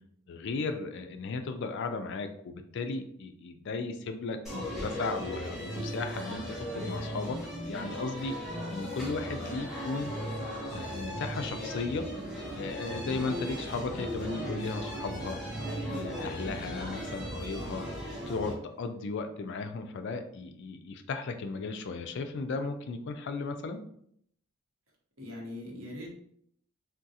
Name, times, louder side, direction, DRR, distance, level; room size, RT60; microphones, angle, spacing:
voice 1, 0.3-7.4 7.7-8.3 8.7-10.1 10.7-12.1 12.5-15.4 15.9-17.8 18.3-23.8, left 3 dB, 55° left, 7 dB, 0.3 m, -35 dB
sound 1, 4.4-18.5, equal, ahead, 1.0 m, -37 dB
voice 2, 25.2-26.1, equal, 65° right, -2 dB, 0.9 m, -40 dB
3.6 x 2.3 x 2.7 m, 0.67 s
head